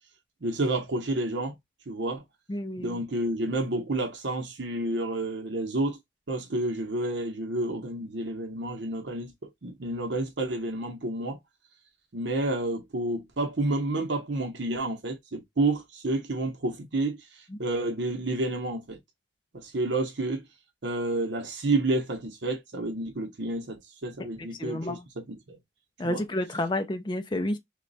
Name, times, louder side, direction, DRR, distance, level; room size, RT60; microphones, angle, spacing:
voice 1, 0.4-1.6 1.9-2.2 2.8-6.0 6.3-11.4 12.1-19.0 19.5-20.4 20.8-25.0 25.5-25.6 26.0-26.2, right 2 dB, 60° right, 0.8 m, -30 dB
voice 2, 2.5-3.0 17.5-17.6 24.4-25.1 26.0-27.6, left 1 dB, 25° left, 0.4 m, -30 dB
3.1 x 2.3 x 3.9 m
head